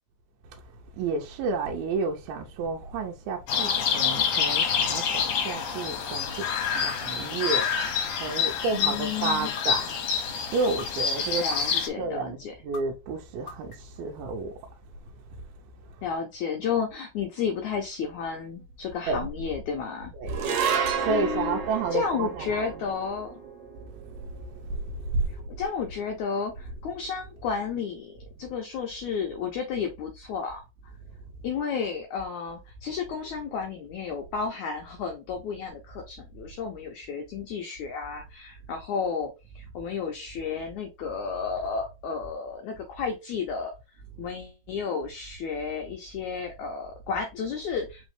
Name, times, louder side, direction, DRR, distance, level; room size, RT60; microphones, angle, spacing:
voice 1, 1.0-6.3 6.7-7.7 8.2-10.0 10.3-11.4 11.7-12.4 12.6-14.5 19.1-19.2 20.2-20.3 21.0-22.7, right 4 dB, 85° right, 2.5 m, -31 dB
sound 1, 3.5-11.9, left 7 dB, 65° left, 2.2 m, -27 dB
sound 2, 6.9-7.0 7.6-8.1 8.8-8.9 9.6-10.1 10.8-10.9 11.5-12.0 12.7-12.8 13.5-14.0, left 4 dB, 45° left, 0.9 m, -40 dB
voice 2, 8.3-9.5 11.4-12.6 16.0-20.1 21.1-21.6 21.9-23.3 25.6-30.6 31.4-43.7 44.2-48.1, left 6 dB, 80° left, 1.7 m, -32 dB
sound 3, 20.3-26.8, right 7 dB, 65° right, 2.1 m, -32 dB
5.5 x 3.1 x 3.2 m
omnidirectional pair, 4.4 m